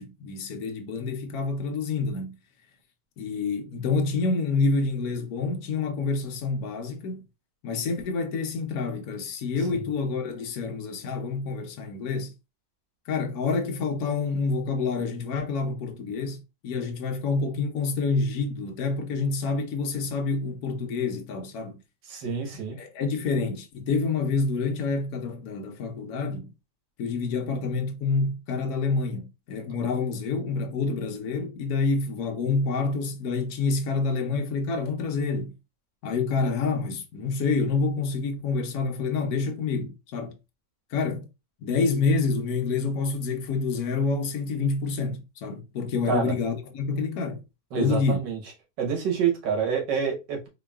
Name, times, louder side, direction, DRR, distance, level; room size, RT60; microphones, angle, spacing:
voice 1, 0.0-2.4 3.2-7.2 7.6-12.3 13.1-21.8 22.8-26.5 27.0-35.5 36.0-40.4 40.9-41.3 41.6-47.4 47.8-48.2, left 4 dB, 65° left, 1.3 m, -27 dB
voice 2, 22.1-22.8 46.1-46.2 47.7-48.4 48.8-50.5, right 6 dB, 85° right, 1.8 m, -27 dB
4.5 x 3.0 x 2.3 m
omnidirectional pair, 1.8 m